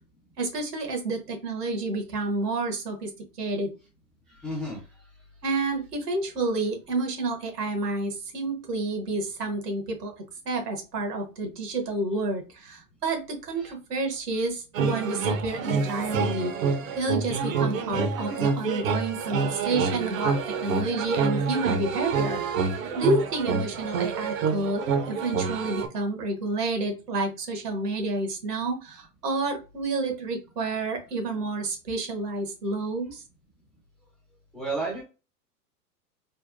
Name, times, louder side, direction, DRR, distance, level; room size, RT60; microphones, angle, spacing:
voice 1, 0.4-3.1 3.4-3.7 5.4-10.1 10.4-20.3 20.6-33.2, right 2 dB, 80° right, 3 dB, 1.1 m, -29 dB
voice 2, 4.3-4.8 13.6-13.7 34.5-35.0, right 2 dB, ahead, -4 dB, 0.3 m, -32 dB
sound 1, 14.7-25.9, right 5 dB, 60° right, 0.6 m, -27 dB
3.3 x 2.1 x 2.4 m, 0.32 s
figure-of-eight pair, 100°, 47 cm